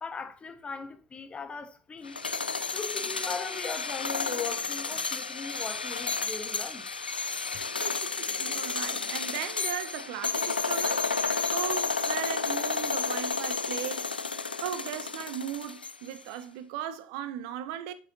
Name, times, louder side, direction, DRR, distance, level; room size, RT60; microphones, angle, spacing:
voice 1, 0.0-2.2 2.7-7.0, left 4 dB, 20° left, 1.1 m, -39 dB
sound 1, 2.1-16.2, left 4 dB, 85° left, 0.3 m, -31 dB
voice 2, 7.7-14.1 14.6-17.9, right 11 dB, 55° right, 0.8 m, -37 dB
7.9 x 6.8 x 2.7 m
figure-of-eight pair, 70°, 5 cm